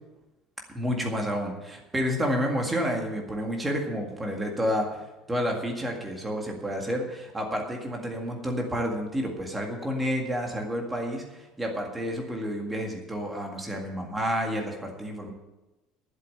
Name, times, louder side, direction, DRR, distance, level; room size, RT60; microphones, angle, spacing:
voice 1, 0.7-5.0 5.3-15.3, equal, 10° right, 1 dB, 1.9 m, -30 dB
11.5 x 7.5 x 8.6 m, 1.0 s
cardioid pair, 180°, 0 cm